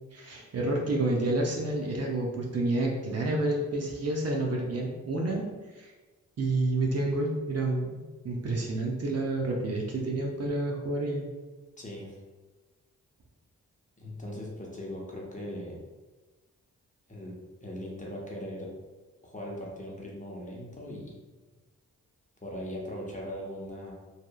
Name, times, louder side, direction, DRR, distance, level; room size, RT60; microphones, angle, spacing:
voice 1, 0.0-5.4 5.8-5.9 6.4-11.2, right 2 dB, 45° right, -1 dB, 0.6 m, -29 dB
voice 2, 11.8-12.2 14.0-15.8 17.1-18.7 19.2-21.2 22.4-23.9, equal, 20° left, -3 dB, 0.8 m, -39 dB
2.7 x 2.4 x 2.3 m, 1.2 s
supercardioid pair, 45°, 35 cm